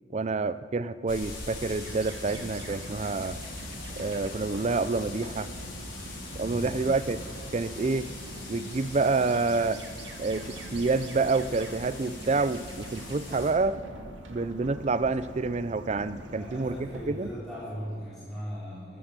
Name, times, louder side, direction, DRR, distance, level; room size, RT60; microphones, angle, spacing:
voice 1, 0.1-3.4 4.0-5.5 6.4-7.2 7.5-8.1 8.5-9.8 10.2-13.8 14.3-17.3, right 3 dB, 35° right, 14 dB, 0.4 m, -28 dB
sound 1, 1.1-13.5, left 2 dB, 90° left, 4.4 m, -42 dB
sound 2, 1.8-17.3, right 2 dB, 65° right, 1.6 m, -47 dB
sound 3, 2.2-17.3, right 1 dB, 85° right, 2.5 m, -46 dB
voice 2, 6.4-6.9 16.3-19.0, equal, ahead, -12 dB, 4.0 m, -38 dB
14.0 x 14.0 x 6.8 m, 2.2 s
head